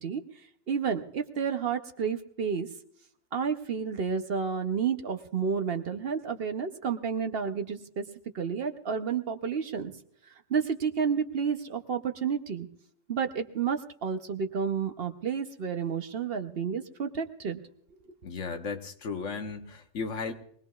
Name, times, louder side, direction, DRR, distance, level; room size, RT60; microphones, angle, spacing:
voice 1, 0.7-2.7 3.3-8.0 8.3-9.9 10.5-12.7 13.1-17.6 18.0-18.1, right 6 dB, 55° right, 7 dB, 0.9 m, -30 dB
voice 2, 18.2-20.3, left 4 dB, 80° left, 5 dB, 1.4 m, -35 dB
23.0 x 19.0 x 2.4 m, 0.66 s
omnidirectional pair, 1.3 m